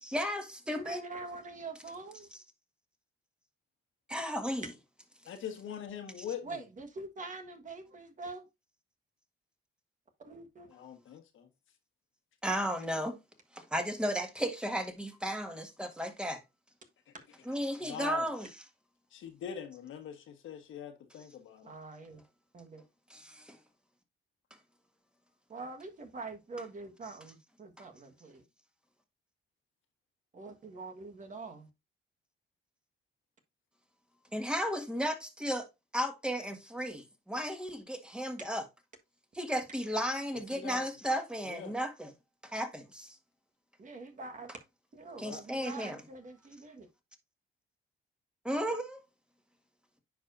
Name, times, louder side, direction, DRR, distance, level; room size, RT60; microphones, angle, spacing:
voice 1, 0.0-1.0 4.1-4.7 12.4-13.2 13.5-16.4 17.5-18.5 23.1-23.6 34.3-35.7 35.9-38.6 39.4-42.1 42.4-43.2 45.2-46.0 48.5-49.0, equal, 5° right, 1.6 m, -34 dB
voice 2, 0.7-2.3 6.4-8.5 10.2-10.7 21.6-22.2 22.5-22.8 25.5-28.4 30.3-31.6 43.8-44.5 44.9-46.9, right 3 dB, 40° right, 1.5 m, -45 dB
voice 3, 5.2-6.6 10.7-11.5 17.8-18.3 19.1-21.7 40.5-40.8 41.5-41.7 45.2-45.4, left 8 dB, 80° left, 1.4 m, -42 dB
9.7 x 4.8 x 2.6 m
cardioid pair, 90°, 20 cm